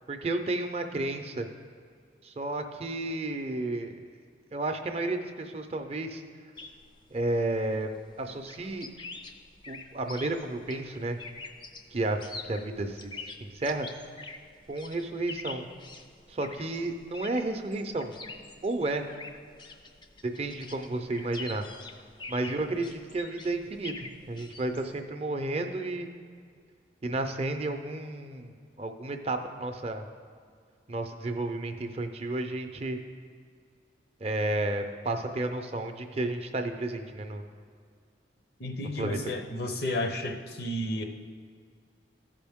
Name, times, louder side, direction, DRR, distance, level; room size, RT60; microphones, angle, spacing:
voice 1, 0.1-1.5 2.2-3.9 4.5-6.2 7.1-7.9 8.2-8.9 9.7-11.2 11.9-13.1 13.4-13.9 14.7-15.6 16.3-18.1 18.6-19.1 20.2-21.6 22.3-26.1 27.0-30.0 30.9-33.0 34.2-37.5 39.0-39.2, right 2 dB, 35° right, 5 dB, 0.5 m, -32 dB
sound 1, 6.6-25.0, left 3 dB, 25° left, 0.4 m, -46 dB
voice 2, 38.6-41.0, left 1 dB, 60° left, 4 dB, 0.7 m, -32 dB
14.0 x 5.2 x 3.6 m, 2.1 s
head